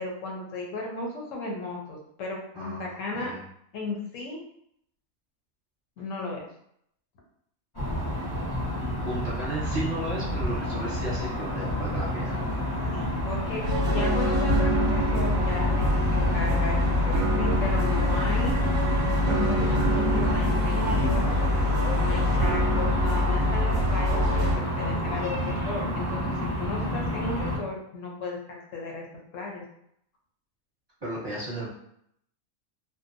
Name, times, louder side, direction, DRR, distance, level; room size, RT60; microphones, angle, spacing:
voice 1, 0.0-3.3 3.7-4.4 6.0-6.4 12.9-29.1 29.3-29.6, left 2 dB, 70° left, 0 dB, 0.9 m, -35 dB
voice 2, 2.5-3.4 9.0-12.4 31.0-31.7, right 1 dB, 20° right, -8 dB, 0.9 m, -34 dB
sound 1, 7.7-27.6, equal, 20° left, 0.7 m, -29 dB
sound 2, 13.6-24.6, left 1 dB, 70° right, 0.9 m, -25 dB
2.6 x 2.1 x 2.5 m, 0.72 s
omnidirectional pair, 1.5 m